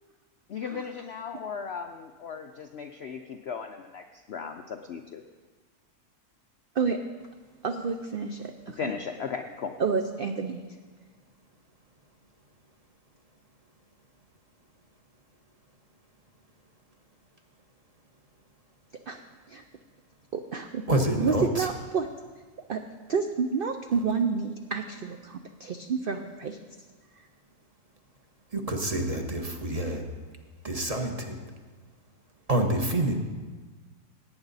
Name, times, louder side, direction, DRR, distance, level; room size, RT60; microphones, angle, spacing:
voice 1, 0.5-5.2 8.8-9.7, left 6 dB, 65° left, 5 dB, 0.6 m, -36 dB
voice 2, 7.6-8.9 9.8-10.6 19.1-19.2 19.5-19.6 20.3-20.8 21.2-22.1 22.7-22.8 23.1-26.6, right 5 dB, 65° right, 5 dB, 0.5 m, -29 dB
voice 3, 20.9-21.7 28.5-30.1 30.6-31.4 32.5-33.1, right 1 dB, 30° right, 3 dB, 0.9 m, -27 dB
17.5 x 9.0 x 4.0 m, 1.4 s
omnidirectional pair, 1.7 m